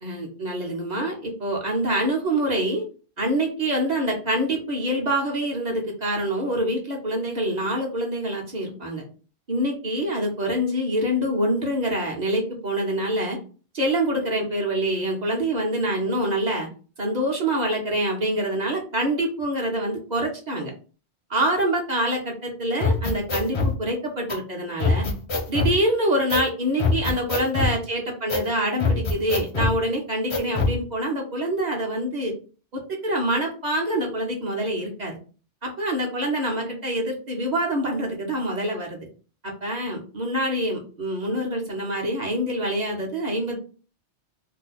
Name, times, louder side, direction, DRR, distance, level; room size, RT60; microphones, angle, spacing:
voice 1, 0.0-2.8 3.2-9.0 9.5-13.4 13.7-16.7 17.0-20.7 21.3-25.1 25.5-32.3 32.7-35.2 35.6-39.0 39.4-43.6, right 1 dB, 45° right, 0 dB, 0.8 m, -25 dB
sound 1, 22.8-23.7 24.3-24.4 24.8-25.7 26.3-26.5 26.8-27.8 28.3-28.5 28.8-29.7 30.3-30.8, left 3 dB, 40° left, 0.5 m, -23 dB
2.7 x 2.1 x 4.0 m, 0.37 s
omnidirectional pair, 1.2 m